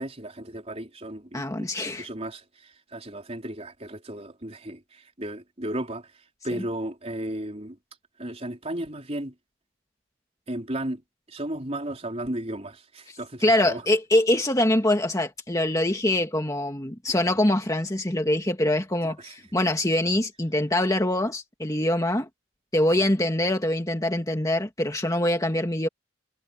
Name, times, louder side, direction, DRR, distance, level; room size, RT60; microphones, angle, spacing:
voice 1, 0.0-7.8 8.2-9.4 10.5-11.0 11.3-13.8 17.1-17.2 19.0-19.3, right 1 dB, 30° right, 4.6 m, -35 dB
voice 2, 1.3-2.1 13.1-22.3 22.7-25.9, left 1 dB, 15° left, 1.9 m, -24 dB
head